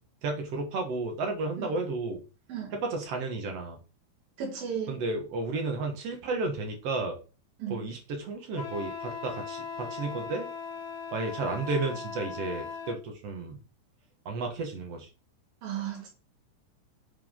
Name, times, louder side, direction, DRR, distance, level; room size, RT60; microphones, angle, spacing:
voice 1, 0.2-2.2 2.7-3.8 4.9-7.2 7.7-10.5 11.1-13.6 14.3-15.1, right 3 dB, 55° right, 2.1 m, -32 dB
voice 2, 4.4-5.0 7.6-7.9 15.6-16.1, right 8 dB, 85° right, 3.7 m, -35 dB
Wind instrument woodwind instrument, 8.5-13.0, left 5 dB, 85° left, 0.9 m, -39 dB
7.8 x 4.7 x 3.7 m
omnidirectional pair, 4.0 m